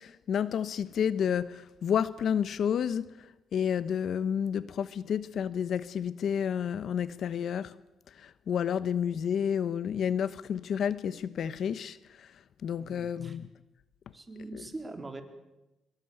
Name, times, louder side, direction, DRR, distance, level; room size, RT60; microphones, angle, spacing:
voice 1, 0.0-7.7 8.1-13.5 14.5-14.6, left 8 dB, 65° left, 1.1 m, -30 dB
voice 2, 12.8-13.4 14.1-15.2, right 2 dB, 20° right, 4.0 m, -42 dB
25.0 x 23.0 x 8.1 m
cardioid pair, 90°, 0 cm